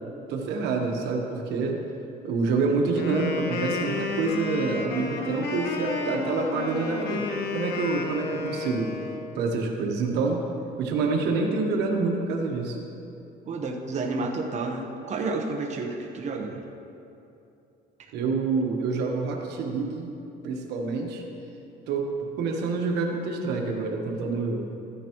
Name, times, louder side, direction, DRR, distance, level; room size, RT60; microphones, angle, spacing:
voice 1, 0.3-1.8 2.2-7.3 7.5-9.0 9.3-10.5 10.8-12.8 18.1-20.1 20.4-21.2 21.9-24.7, right 4 dB, 85° right, 2 dB, 1.2 m, -27 dB
Wind instrument woodwind instrument, 3.0-9.2, left 4 dB, 70° left, 1.1 m, -32 dB
voice 2, 13.5-16.6, right 3 dB, 45° right, 1 dB, 1.0 m, -30 dB
14.0 x 9.9 x 3.0 m, 2.8 s
cardioid pair, 110°, 17 cm